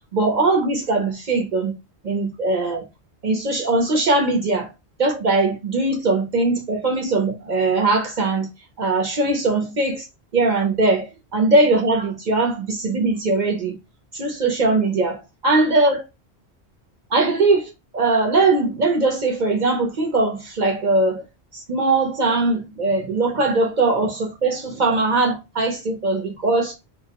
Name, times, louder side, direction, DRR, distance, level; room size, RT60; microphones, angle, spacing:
voice 1, 0.0-1.7 2.0-2.9 3.2-4.7 5.0-8.5 8.8-10.0 10.3-13.8 14.1-16.0 17.1-21.2 21.5-26.7, right 3 dB, 50° right, 0.7 m, -20 dB
2.3 x 2.1 x 2.7 m
omnidirectional pair, 1.1 m